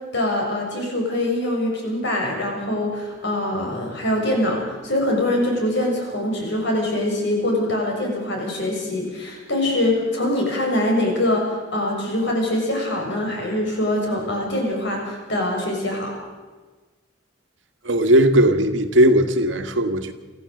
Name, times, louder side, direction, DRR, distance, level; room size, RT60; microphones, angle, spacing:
voice 1, 0.1-16.2, left 1 dB, 65° left, 0 dB, 6.8 m, -23 dB
voice 2, 17.8-20.1, right 1 dB, 70° right, 7 dB, 1.7 m, -17 dB
25.0 x 15.0 x 7.9 m, 1.3 s
head